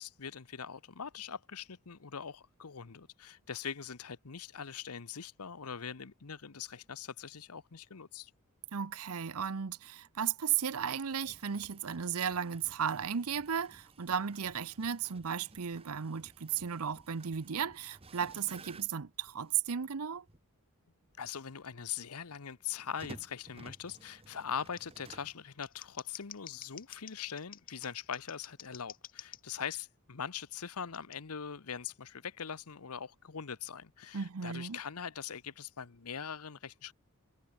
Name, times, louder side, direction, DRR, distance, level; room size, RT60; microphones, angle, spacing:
voice 1, 0.0-8.3 21.2-36.9, left 7 dB, 90° left, 0.9 m, -42 dB
voice 2, 8.7-20.2 34.1-34.8, right 7 dB, 80° right, 0.7 m, -35 dB
sound 1, 11.1-19.6 20.3-20.4 22.8-25.4, right 2 dB, 25° right, 1.2 m, -55 dB
Scissors, 23.7-23.8 24.7-24.8 25.5-29.4 30.9-31.2, left 11 dB, 40° left, 2.3 m, -50 dB
head